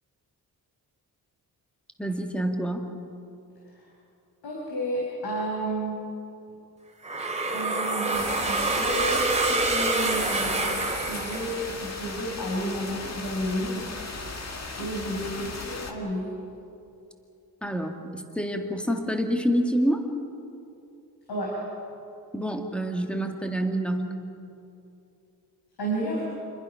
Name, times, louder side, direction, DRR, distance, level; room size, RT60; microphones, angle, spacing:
voice 1, 2.0-2.9 17.6-20.1 22.3-24.1, equal, 5° left, 3 dB, 2.1 m, -27 dB
voice 2, 4.4-6.0 7.5-13.9 14.8-16.2 21.3-21.6 25.8-26.3, right 1 dB, 85° left, -4 dB, 5.7 m, -31 dB
sound 1, 7.0-12.0, right 2 dB, 20° right, 2.5 m, -27 dB
sound 2, 8.1-15.9, left 3 dB, 45° left, 2.1 m, -37 dB
28.5 x 21.5 x 5.9 m, 2.7 s
wide cardioid pair, 110°, 38 cm